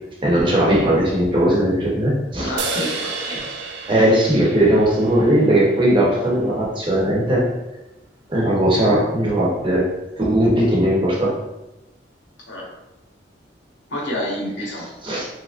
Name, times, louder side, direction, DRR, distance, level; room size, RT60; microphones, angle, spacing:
voice 1, 0.2-2.5 3.3-3.4 3.9-7.5 8.3-9.9 10.2-11.3 15.0-15.3, right 1 dB, 25° right, -4 dB, 0.8 m, -18 dB
voice 2, 2.4-3.5 12.5-12.6 13.9-14.9, left 1 dB, 90° left, -3 dB, 1.1 m, -28 dB
sound 1, 2.6-6.1, right 4 dB, 70° right, 0.4 m, -31 dB
3.6 x 2.9 x 2.4 m, 0.97 s
head